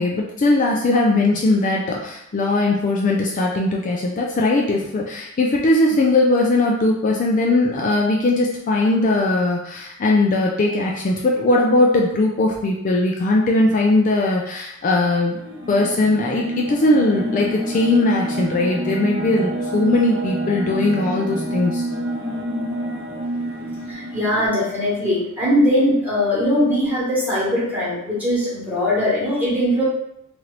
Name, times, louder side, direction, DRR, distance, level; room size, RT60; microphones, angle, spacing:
voice 1, 0.0-15.4 15.7-21.9, left 2 dB, 40° left, -1 dB, 0.3 m, -19 dB
sound 1, 15.3-24.5, right 1 dB, 80° right, 1.0 m, -27 dB
voice 2, 23.9-29.8, left 1 dB, 10° right, -8 dB, 1.3 m, -20 dB
2.9 x 2.5 x 3.1 m, 0.80 s
head